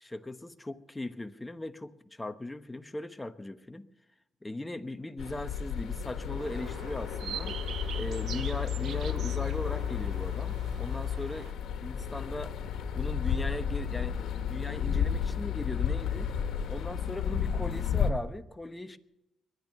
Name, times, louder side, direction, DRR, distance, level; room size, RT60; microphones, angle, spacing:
voice 1, 0.0-3.9 4.4-7.6 7.9-11.5 11.8-12.6 12.9-14.2 14.5-16.3 16.7-19.0, left 2 dB, 15° left, 9 dB, 1.0 m, -38 dB
sound 1, 5.2-18.1, left 8 dB, 75° left, 1.6 m, -32 dB
sound 2, 6.4-11.5, right 9 dB, 65° right, 0.6 m, -43 dB
21.5 x 11.0 x 5.5 m, 0.92 s
cardioid pair, 90°, 0 cm